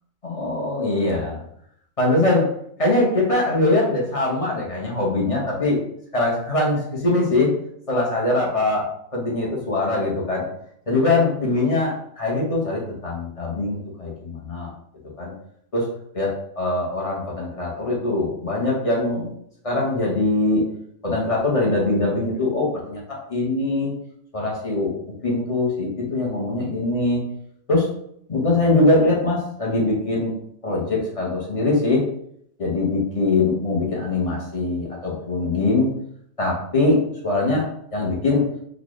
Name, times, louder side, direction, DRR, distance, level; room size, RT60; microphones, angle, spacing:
voice 1, 0.2-1.4 2.0-2.5 2.8-5.8 6.1-7.5 7.9-10.4 10.9-14.7 15.2-15.3 15.7-15.9 16.1-19.3 19.6-20.6 21.0-23.9 24.3-24.9 25.2-27.2 27.7-27.9 28.3-30.3 30.6-32.0 32.6-35.9 36.4-37.0 37.2-37.7 37.9-38.4, left 2 dB, 30° left, -3 dB, 0.8 m, -22 dB
4.1 x 2.4 x 3.0 m, 0.70 s
omnidirectional pair, 1.4 m